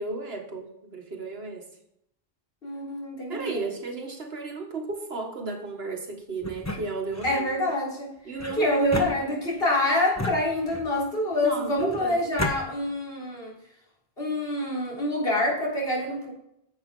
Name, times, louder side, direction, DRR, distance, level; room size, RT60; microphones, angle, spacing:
voice 1, 0.0-1.7 3.3-7.6 8.3-9.0 11.4-12.2, right 3 dB, 75° right, 1.9 m, -34 dB
voice 2, 2.6-3.6 7.2-8.1 8.6-13.5 14.2-16.3, left 1 dB, 70° left, 3.9 m, -26 dB
Opening and closing metal mailbox, 6.4-7.4 8.4-9.7 10.2-11.0 11.8-12.6, left 1 dB, 15° left, 1.1 m, -33 dB
10.5 x 7.5 x 3.8 m
omnidirectional pair, 1.0 m